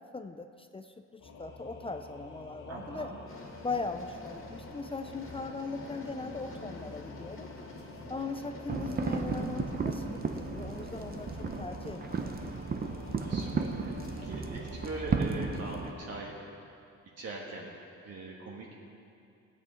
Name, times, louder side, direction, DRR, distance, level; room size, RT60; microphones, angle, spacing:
voice 1, 0.1-3.1 3.6-7.5 8.1-12.5, left 3 dB, 20° left, 8 dB, 0.4 m, -39 dB
Singing / Musical instrument, 1.2-16.2, left 3 dB, 80° left, 1.7 m, -48 dB
voice 2, 2.7-3.2 13.2-16.3 17.2-17.7 18.0-18.8, right 3 dB, 55° right, -3 dB, 1.4 m, -41 dB
sound 1, 3.2-15.0, left 1 dB, 45° left, 2.0 m, -49 dB
sound 2, 8.7-15.9, right 4 dB, 30° right, 0.6 m, -34 dB
17.5 x 8.4 x 4.4 m, 2.5 s
wide cardioid pair, 150°, 30 cm